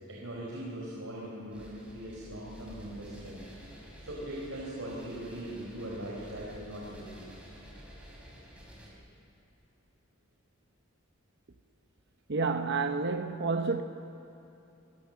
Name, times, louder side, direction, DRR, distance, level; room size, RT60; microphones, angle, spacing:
voice 1, 0.1-3.4 4.0-7.2, right 1 dB, 85° right, 4.5 m, -40 dB
sound 1, 1.5-8.9, equal, 5° right, 5.8 m, -50 dB
voice 2, 12.3-13.8, right 4 dB, 60° right, 0.9 m, -29 dB
26.0 x 20.0 x 7.3 m
head